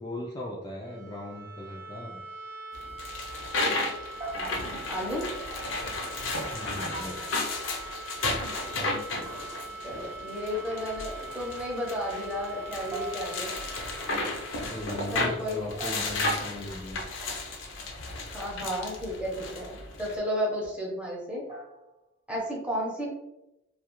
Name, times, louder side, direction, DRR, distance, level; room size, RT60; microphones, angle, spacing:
voice 1, 0.0-2.2 6.5-7.2 14.7-17.0, left 1 dB, 20° left, -4 dB, 0.3 m, -38 dB
sound 1, 0.7-16.5, right 3 dB, 50° right, 0.5 m, -43 dB
sound 2, 2.7-20.2, left 2 dB, 80° left, 0.5 m, -34 dB
sound 3, 4.2-5.0 6.9-7.8 9.3-9.9 11.3-11.7 12.9-13.9 15.8-16.6 19.6-19.9 21.5-22.0, right 2 dB, 30° right, 0.9 m, -42 dB
voice 2, 4.3-5.2 9.2-9.3 9.7-13.5 15.1-15.7 18.3-21.4 22.3-23.1, equal, 5° right, -3 dB, 0.7 m, -33 dB
2.3 x 2.3 x 2.9 m, 0.93 s
head